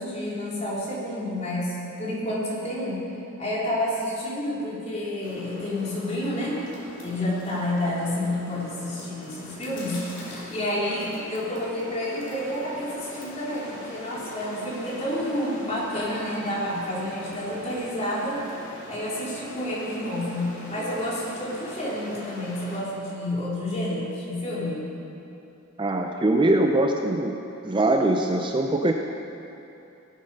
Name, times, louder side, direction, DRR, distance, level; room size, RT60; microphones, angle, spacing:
voice 1, 0.0-3.0 3.4-6.6 7.0-18.4 18.9-24.9, left 1 dB, 30° left, -6 dB, 3.4 m, -29 dB
sound 1, 5.2-22.8, left 1 dB, 60° left, 3.2 m, -42 dB
voice 2, 25.8-27.4 27.6-28.9, right 1 dB, 25° right, 3 dB, 0.5 m, -22 dB
17.5 x 7.4 x 5.5 m, 2.8 s
head